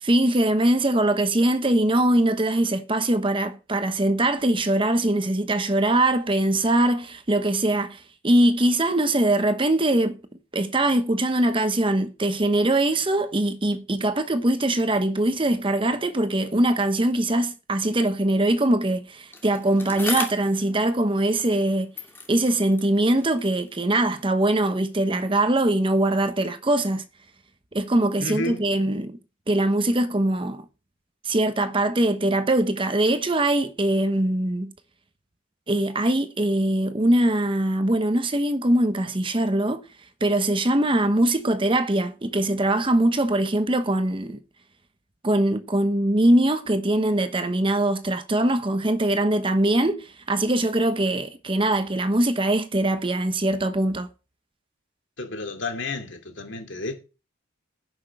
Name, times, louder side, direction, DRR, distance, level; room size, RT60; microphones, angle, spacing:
voice 1, 0.0-10.2 10.5-21.9 22.3-27.1 27.7-29.2 29.5-30.6 31.2-34.7 35.7-39.8 40.2-44.4 45.2-54.1, right 1 dB, 25° right, 0.9 m, -22 dB
Bicycle, 19.3-21.7 21.9-24.3 25.1-25.2, left 3 dB, 10° left, 2.4 m, -37 dB
voice 2, 28.2-28.6 55.2-56.9, left 2 dB, 65° left, 2.6 m, -31 dB
10.5 x 6.2 x 6.6 m
head